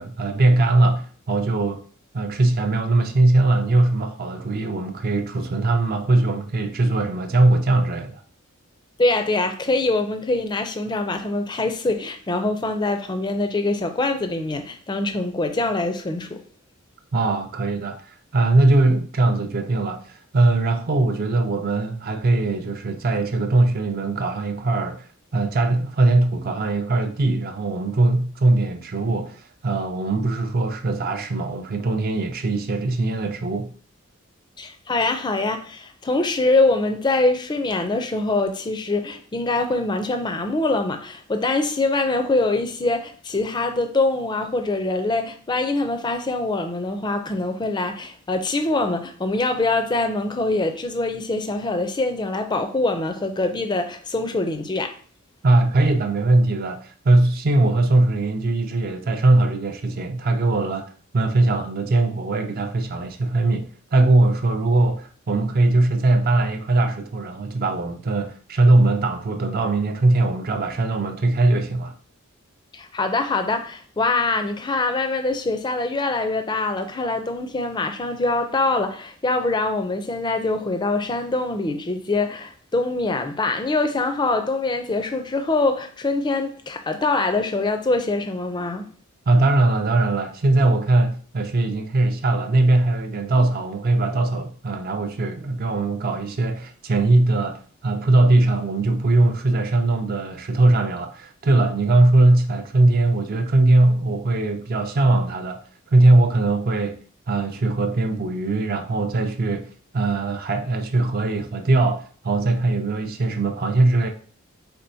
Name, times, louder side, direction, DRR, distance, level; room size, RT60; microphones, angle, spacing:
voice 1, 0.0-1.8 2.1-8.2 17.1-33.7 55.4-71.9 89.3-105.6 105.9-107.0 107.3-109.7 109.9-114.1, right 2 dB, 45° right, 0.4 m, -20 dB
voice 2, 9.0-16.4 34.6-54.9 72.7-88.8, left 2 dB, 20° left, 0.4 m, -24 dB
4.3 x 4.0 x 2.7 m
head